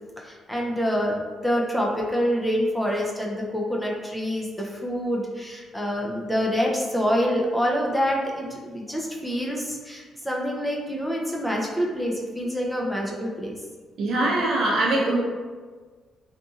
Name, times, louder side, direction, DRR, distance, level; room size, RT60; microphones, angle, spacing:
voice 1, 0.2-13.6, equal, 5° left, -2 dB, 0.5 m, -26 dB
voice 2, 14.0-15.2, right 2 dB, 65° right, -2 dB, 0.6 m, -22 dB
2.7 x 2.6 x 2.4 m, 1.4 s
cardioid pair, 90°, 0 cm